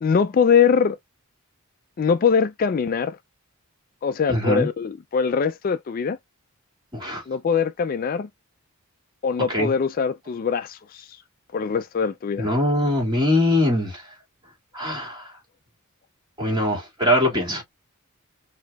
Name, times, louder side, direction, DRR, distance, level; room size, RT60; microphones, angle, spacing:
voice 1, 0.0-1.0 2.0-3.2 4.0-6.2 7.3-8.3 9.2-11.2 11.5-12.5, left 6 dB, 40° left, 0.3 m, -22 dB
voice 2, 4.3-4.7 6.9-7.2 9.5-9.7 12.4-14.0 14.7-15.3 16.4-17.6, left 1 dB, 20° right, 2.1 m, -22 dB
6.3 x 2.7 x 2.3 m
head